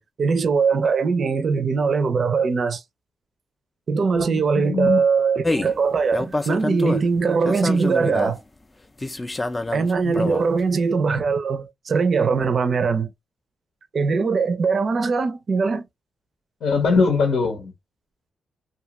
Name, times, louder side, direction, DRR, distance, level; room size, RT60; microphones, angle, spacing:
voice 1, 0.0-2.8 3.9-8.4 9.7-13.1 13.9-15.9, right 5 dB, 50° right, 0.5 m, -21 dB
voice 2, 4.3-5.0 10.0-10.2 16.6-17.7, left 4 dB, 85° left, 0.8 m, -21 dB
sound 1, 5.4-5.8 6.1-7.1 7.4-8.4 9.0-10.5, left 2 dB, 20° left, 0.3 m, -27 dB
2.6 x 2.3 x 2.8 m
cardioid pair, 95°, 0 cm